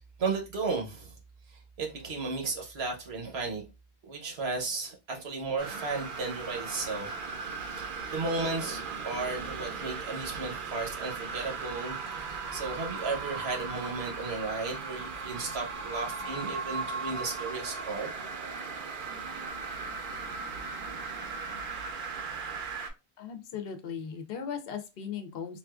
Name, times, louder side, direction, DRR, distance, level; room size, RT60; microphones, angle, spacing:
voice 1, 0.2-1.1 1.5-3.6 4.0-7.1 7.4-12.0 12.2-18.1, right 3 dB, 80° right, 1.1 m, -34 dB
sound 1, 5.6-22.9, right 4 dB, 60° right, 0.7 m, -37 dB
voice 2, 23.2-25.6, left 7 dB, 70° left, 0.8 m, -38 dB
4.0 x 2.4 x 2.3 m
omnidirectional pair, 1.0 m